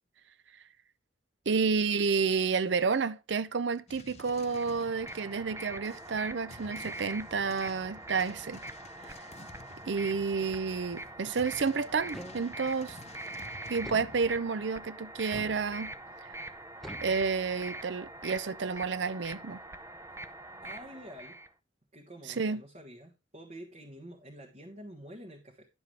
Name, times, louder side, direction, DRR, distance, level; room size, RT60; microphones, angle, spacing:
voice 1, 1.5-8.6 9.0-9.1 9.9-13.0 13.7-15.9 16.2-16.3 17.0-19.6 22.4-22.6, right 5 dB, 70° right, 0.6 m, -30 dB
sound 1, 3.9-14.4, left 3 dB, 35° left, 0.6 m, -52 dB
sound 2, 4.4-21.5, right 2 dB, 15° right, 0.5 m, -44 dB
sound 3, 12.1-12.8 13.8-14.7 15.3-16.1 16.8-17.8, equal, ahead, 1.2 m, -47 dB
voice 2, 20.6-21.4 21.9-25.7, equal, 40° right, 1.5 m, -48 dB
10.5 x 7.2 x 3.3 m
head